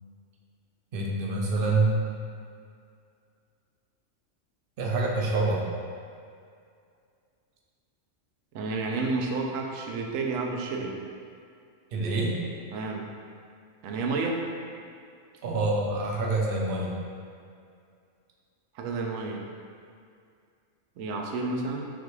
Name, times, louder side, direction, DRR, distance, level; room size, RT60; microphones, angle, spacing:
voice 1, 0.9-2.0 4.8-5.6 11.9-12.4 15.4-16.9, right 2 dB, 55° right, -2 dB, 0.7 m, -26 dB
voice 2, 8.5-10.9 12.7-13.1 13.8-14.4 18.7-19.5 21.0-21.9, right 3 dB, 90° right, 1 dB, 1.0 m, -30 dB
5.7 x 2.4 x 3.1 m, 2.3 s
omnidirectional pair, 1.3 m